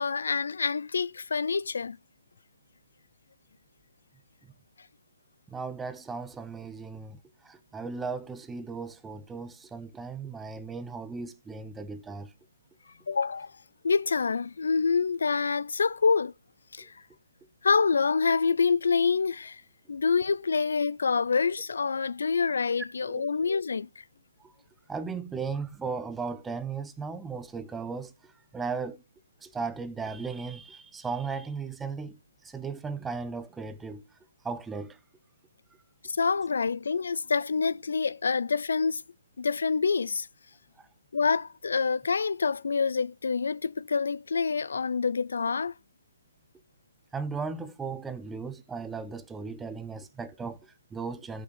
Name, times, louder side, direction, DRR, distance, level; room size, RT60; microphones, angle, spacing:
voice 1, 0.0-2.0 13.1-13.5 13.8-16.3 16.7-16.9 17.6-19.6 19.9-24.0 36.0-39.0 39.4-40.3 41.1-45.7, left 5 dB, 75° left, 0.4 m, -26 dB
voice 2, 5.5-12.3 23.1-23.3 24.4-24.5 24.9-29.0 29.4-34.0 34.4-35.0 40.8-40.9 47.1-51.4, right 5 dB, 10° right, 0.6 m, -36 dB
15.0 x 6.3 x 3.2 m
hypercardioid pair, 150°, 0 cm